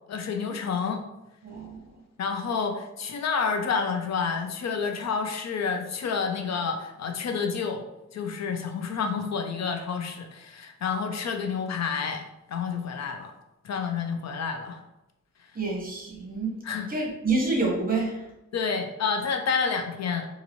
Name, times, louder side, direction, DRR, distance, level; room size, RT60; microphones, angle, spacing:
voice 1, 0.1-1.0 2.2-7.8 8.1-13.3 13.6-14.8 16.6-16.9 18.5-20.3, left 5 dB, 65° left, 5 dB, 0.5 m, -29 dB
voice 2, 1.4-1.8 15.5-16.5 16.9-18.3, right 3 dB, 30° right, -1 dB, 1.0 m, -27 dB
4.0 x 2.6 x 2.9 m, 0.92 s
wide cardioid pair, 100°, 29 cm